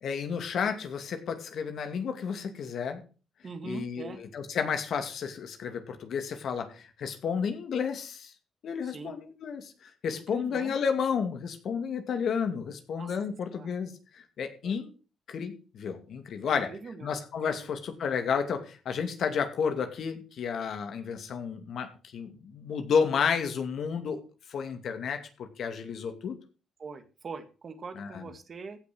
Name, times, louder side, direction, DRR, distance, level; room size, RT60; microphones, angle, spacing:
voice 1, 0.0-3.0 3.6-8.3 8.6-14.9 15.3-16.7 17.0-24.2 24.5-26.4 28.0-28.3, left 6 dB, 65° left, 7 dB, 2.4 m, -31 dB
voice 2, 3.4-4.2 8.8-9.2 10.1-10.7 13.0-13.1 13.5-13.7 14.6-14.8 16.4-17.1 17.4-17.7 26.8-28.8, right 4 dB, 45° right, 9 dB, 1.8 m, -42 dB
15.5 x 5.9 x 6.2 m, 0.36 s
cardioid pair, 90°, 0 cm